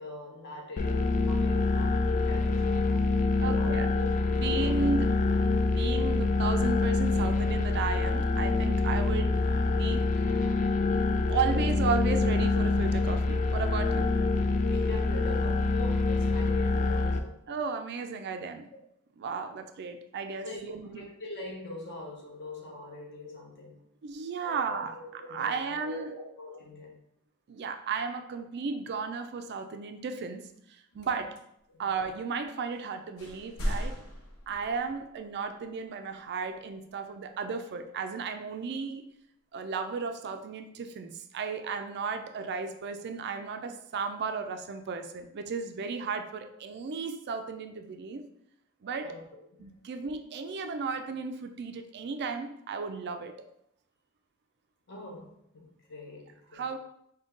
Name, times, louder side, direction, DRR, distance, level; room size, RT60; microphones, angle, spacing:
voice 1, 0.0-3.1 3.4-4.9 14.7-17.4 20.4-23.8 24.4-27.0 31.7-31.8 49.0-49.2 49.6-49.7 54.9-56.7, left 2 dB, 55° left, -1 dB, 1.1 m, -43 dB
sound 1, 0.8-17.2, left 3 dB, 35° left, 0.3 m, -26 dB
voice 2, 3.4-3.9 4.3-5.2 5.7-9.4 9.8-10.4 11.3-14.1 17.5-18.7 19.2-21.1 24.0-26.3 27.5-31.4 31.8-34.0 34.5-39.0 39.5-48.3 48.8-49.2 49.6-53.5 56.5-56.8, right 5 dB, 50° right, 7 dB, 0.4 m, -34 dB
sound 2, 32.7-32.9 33.2-35.2, equal, 80° left, 0.9 m, -36 dB
5.1 x 2.2 x 3.7 m, 0.74 s
head